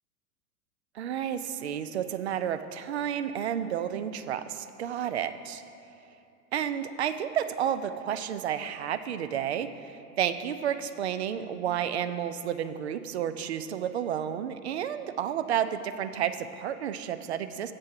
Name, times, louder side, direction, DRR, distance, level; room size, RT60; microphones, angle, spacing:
voice 1, 0.9-5.6 6.5-17.7, right 9 dB, 45° right, 11 dB, 0.5 m, -31 dB
8.2 x 7.4 x 4.6 m, 2.6 s
figure-of-eight pair, 100°, 47 cm